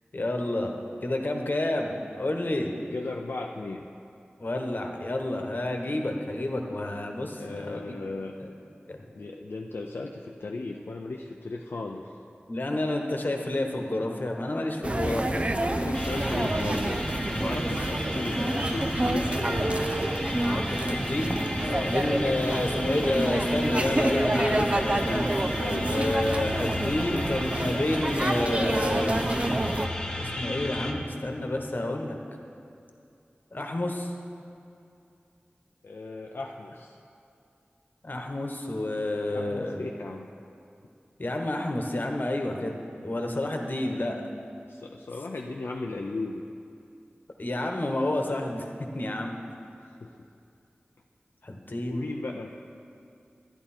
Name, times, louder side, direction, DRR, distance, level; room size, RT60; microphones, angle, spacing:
voice 1, 0.1-0.8 1.0-2.7 4.4-8.0 8.4-8.5 8.9-9.0 12.5-15.2 20.4-21.4 21.9-25.3 25.9-29.2 30.2-32.2 33.5-34.1 38.0-39.8 41.2-42.7 43.0-44.2 47.4-49.3 51.4-52.0, left 1 dB, 55° left, 2 dB, 1.2 m, -29 dB
voice 2, 2.9-3.9 7.3-8.4 9.1-12.1 14.9-17.0 17.3-19.8 21.6-22.0 25.6-25.9 35.8-37.0 39.3-40.3 44.7-46.5 49.8-50.1 51.8-52.5, left 3 dB, 80° left, 0 dB, 0.5 m, -36 dB
sound 1, 14.8-29.9, right 1 dB, 30° right, 0.6 m, -28 dB
sound 2, 15.9-30.9, left 1 dB, 25° left, 1.4 m, -34 dB
11.0 x 10.0 x 4.4 m, 2.6 s
wide cardioid pair, 45°, 4 cm